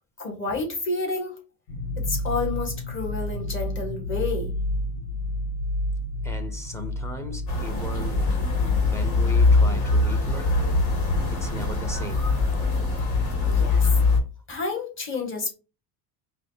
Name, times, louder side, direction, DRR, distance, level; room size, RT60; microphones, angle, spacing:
voice 1, 0.2-1.4 2.0-4.5 13.4-13.9 14.5-15.5, left 3 dB, 30° left, 1.4 m, -30 dB
sound 1, 1.7-7.5, left 1 dB, 85° left, 1.0 m, -30 dB
voice 2, 6.2-8.2 8.6-10.5 11.3-12.3, left 1 dB, 5° left, 0.5 m, -37 dB
sound 2, 7.5-14.2, left 3 dB, 60° left, 2.0 m, -22 dB
4.8 x 2.4 x 2.7 m
cardioid pair, 130°, 42 cm